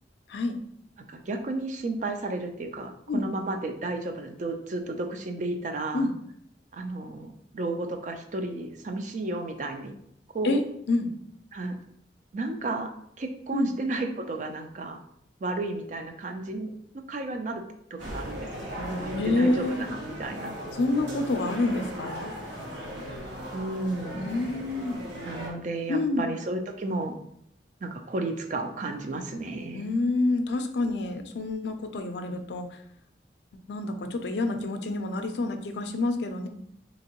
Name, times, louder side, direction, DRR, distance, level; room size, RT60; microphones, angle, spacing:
voice 1, 1.1-6.0 6.7-10.0 10.3-10.6 11.5-11.7 12.3-15.0 15.4-16.7 17.1-17.6 17.9-20.5 23.5-24.3 25.2-27.2 27.8-29.9, right 2 dB, 45° right, 5 dB, 0.4 m, -33 dB
voice 2, 10.4-11.1 13.5-13.7 19.1-19.8 20.8-22.3 24.1-25.0 25.9-26.3 29.7-32.8 33.7-36.5, left 2 dB, 75° left, 7 dB, 0.4 m, -28 dB
sound 1, 18.0-25.5, equal, 85° right, 0.9 m, -37 dB
3.5 x 2.9 x 2.9 m, 0.70 s
head